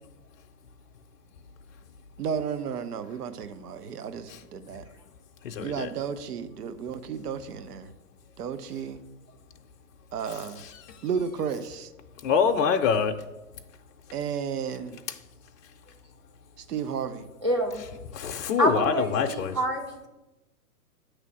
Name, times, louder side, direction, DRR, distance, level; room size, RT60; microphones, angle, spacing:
voice 1, 2.2-4.8 5.6-7.9 8.4-9.0 10.1-10.6 11.0-11.9 14.1-15.0 16.6-17.3, right 7 dB, 75° right, 11 dB, 0.7 m, -33 dB
voice 2, 5.4-5.9 12.2-13.2 18.1-19.6, left 6 dB, 55° left, 5 dB, 0.6 m, -25 dB
voice 3, 17.4-17.8 18.6-20.1, equal, 20° right, -1 dB, 0.3 m, -27 dB
8.6 x 3.3 x 6.1 m, 1.0 s
hypercardioid pair, 125°, 47 cm